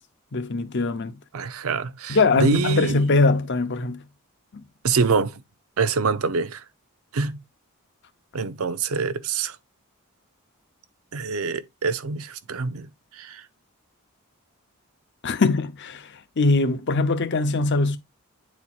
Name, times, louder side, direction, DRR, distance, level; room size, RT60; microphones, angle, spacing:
voice 1, 0.3-1.2 2.1-4.0 4.5-4.6 15.2-18.0, left 3 dB, 50° left, 0.7 m, -22 dB
voice 2, 1.3-3.0 4.8-5.4 5.8-6.6 7.1-7.4 8.3-9.6 11.1-12.9 13.1-13.4, right 4 dB, 70° right, 0.6 m, -25 dB
9.4 x 4.3 x 2.4 m
head